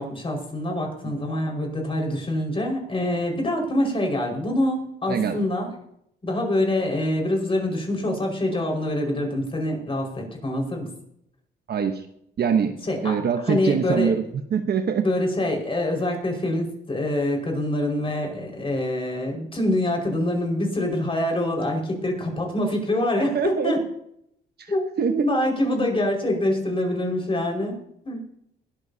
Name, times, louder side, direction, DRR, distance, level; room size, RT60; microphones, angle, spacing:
voice 1, 0.0-5.7 6.2-10.9 12.8-13.2 13.5-14.1 15.0-23.8 24.7-24.9 25.2-27.7 28.0-28.2, left 1 dB, 25° left, 1 dB, 5.1 m, -25 dB
voice 2, 5.1-5.4 11.7-12.0 12.4-12.8 13.0-14.2 14.5-15.1 23.2-23.7 25.0-25.3, right 7 dB, 55° right, 6 dB, 1.0 m, -23 dB
20.5 x 12.5 x 2.8 m, 0.74 s
cardioid pair, 90°, 20 cm